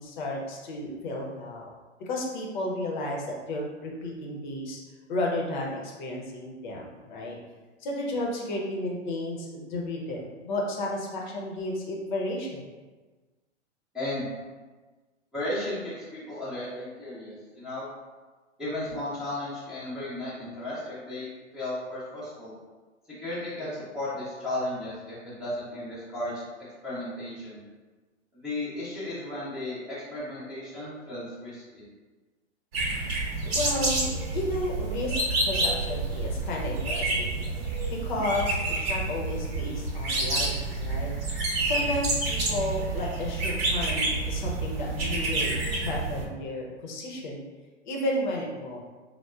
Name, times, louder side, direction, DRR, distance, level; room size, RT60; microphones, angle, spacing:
voice 1, 0.0-1.7 2.0-4.8 5.1-7.4 7.8-12.6 33.5-35.2 35.4-37.4 38.0-41.1 41.7-47.4 47.8-48.8, left 1 dB, 40° left, -2 dB, 0.6 m, -32 dB
voice 2, 13.9-14.3 15.3-17.9 18.6-22.5 23.2-26.4 26.8-27.6 28.3-31.8, left 1 dB, ahead, -11 dB, 0.5 m, -35 dB
sound 1, 32.7-46.2, right 2 dB, 55° right, 0.9 m, -29 dB
4.2 x 2.0 x 2.3 m, 1.3 s
figure-of-eight pair, 115°, 36 cm